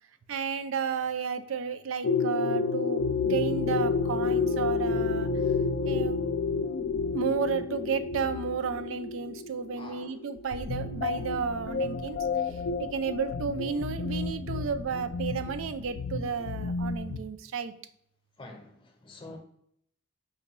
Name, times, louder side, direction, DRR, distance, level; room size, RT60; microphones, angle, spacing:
voice 1, 0.3-5.3 5.8-6.2 7.1-12.2 12.5-17.7, right 6 dB, 85° right, 10 dB, 0.4 m, -32 dB
sound 1, 2.0-17.2, left 4 dB, 60° left, 0.3 m, -30 dB
voice 2, 9.8-10.1 18.4-19.4, left 2 dB, 25° left, 3 dB, 0.7 m, -46 dB
4.8 x 2.2 x 4.1 m, 0.69 s
head